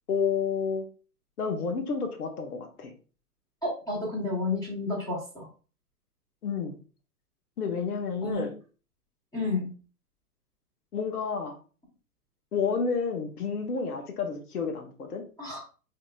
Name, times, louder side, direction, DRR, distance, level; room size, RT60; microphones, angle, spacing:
voice 1, 0.1-0.8 1.4-2.9 6.4-6.7 7.6-8.5 10.9-11.6 12.5-15.2, left 5 dB, 70° left, 3 dB, 1.1 m, -30 dB
voice 2, 3.6-5.5 8.2-8.5 9.3-9.7 15.4-15.6, left 2 dB, 10° left, -5 dB, 1.2 m, -31 dB
5.0 x 2.8 x 2.3 m, 0.36 s
figure-of-eight pair, 115°, 47 cm